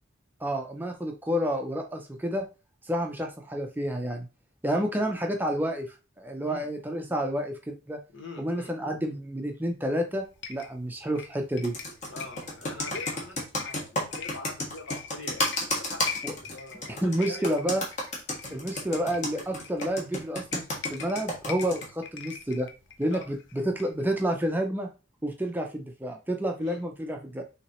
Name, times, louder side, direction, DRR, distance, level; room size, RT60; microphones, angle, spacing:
voice 1, 0.4-2.4 2.9-4.3 4.6-8.0 8.4-11.7 16.2-16.3 16.9-17.8 18.5-20.6 20.9-22.7 23.0-24.9 25.2-27.4, equal, 10° right, 3 dB, 0.5 m, -29 dB
voice 2, 4.6-5.1 6.4-6.7 8.1-8.7 12.0-17.6 18.4-18.7 23.0-23.2 26.6-26.8, left 2 dB, 80° left, 0 dB, 1.7 m, -44 dB
sound 1, 10.1-24.2, left 7 dB, 65° left, 0.6 m, -43 dB
Computer keyboard, 11.6-21.9, left 1 dB, 35° left, 1.4 m, -32 dB
6.0 x 2.9 x 3.0 m, 0.31 s
head